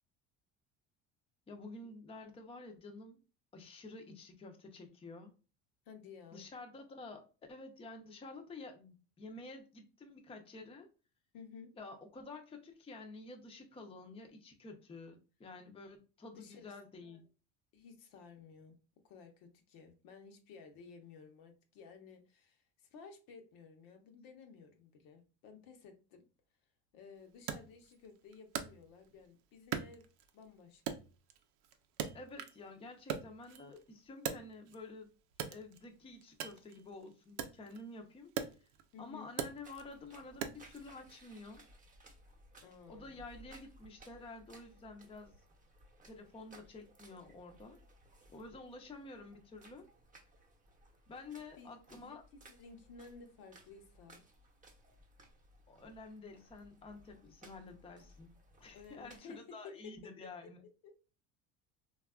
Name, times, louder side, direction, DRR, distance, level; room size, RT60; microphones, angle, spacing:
voice 1, 1.5-3.2 3.5-5.3 6.3-7.2 7.5-10.9 11.8-17.2 32.1-35.1 35.5-38.7 39.0-41.6 42.9-45.3 46.0-47.8 48.3-49.9 51.1-52.2 55.7-58.3 58.6-60.6, left 3 dB, 15° left, 0.5 m, -50 dB
voice 2, 5.9-6.5 11.3-11.7 16.4-17.2 17.7-18.8 19.0-26.2 26.9-30.1 30.3-31.0 38.9-39.3 42.6-43.2 51.6-54.2 58.7-59.9 60.4-60.5 60.8-60.9, left 5 dB, 70° left, 0.8 m, -55 dB
Wood, 27.5-29.3 29.7-30.5 30.9-32.7 33.0-34.9 35.3-40.8, right 8 dB, 80° right, 0.5 m, -42 dB
sound 1, 39.6-59.2, right 1 dB, 20° right, 0.8 m, -61 dB
3.3 x 2.3 x 2.3 m
supercardioid pair, 95°, 36 cm